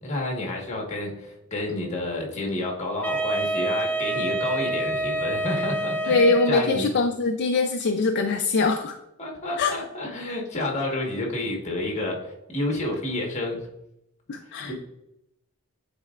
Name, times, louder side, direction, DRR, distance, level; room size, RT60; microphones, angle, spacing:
voice 1, 0.0-6.9 9.2-13.7 14.6-14.7, left 2 dB, 30° left, 0 dB, 1.5 m, -30 dB
Wind instrument woodwind instrument, 3.0-6.9, right 2 dB, 5° left, 0.6 m, -27 dB
voice 2, 6.1-9.0 9.6-9.7 14.3-14.7, left 3 dB, 55° left, 4 dB, 0.5 m, -22 dB
9.6 x 4.1 x 2.5 m, 0.83 s
head